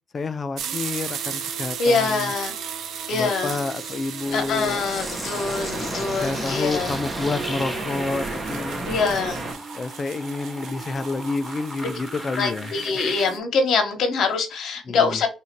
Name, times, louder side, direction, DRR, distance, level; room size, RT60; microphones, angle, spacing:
voice 1, 0.1-2.3 3.1-4.8 5.6-8.8 9.7-12.7 14.9-15.2, left 3 dB, 40° left, 0.4 m, -29 dB
sound 1, 0.6-13.4, right 7 dB, 75° right, 0.7 m, -36 dB
voice 2, 1.8-2.5 3.1-3.6 4.3-6.9 8.9-9.4 12.4-15.3, left 4 dB, 70° left, 1.2 m, -24 dB
sound 2, 2.6-13.2, equal, ahead, 1.2 m, -38 dB
sound 3, 4.2-9.5, right 2 dB, 30° right, 1.2 m, -32 dB
3.7 x 2.8 x 4.3 m
cardioid pair, 90°, 0 cm